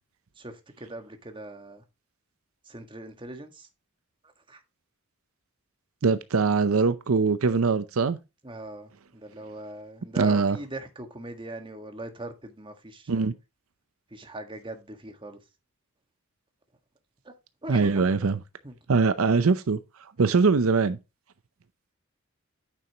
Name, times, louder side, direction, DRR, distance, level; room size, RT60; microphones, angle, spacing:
voice 1, 0.4-1.8 2.7-3.7 4.5-4.6 8.4-13.3 14.1-15.4 17.2-17.3 17.6-18.1 18.6-18.8, right 2 dB, 25° right, 1.5 m, -41 dB
voice 2, 6.0-8.2 10.2-10.6 13.1-13.3 17.7-18.4 18.9-19.8 20.2-21.0, right 4 dB, 80° right, 0.6 m, -22 dB
9.1 x 6.9 x 2.9 m
head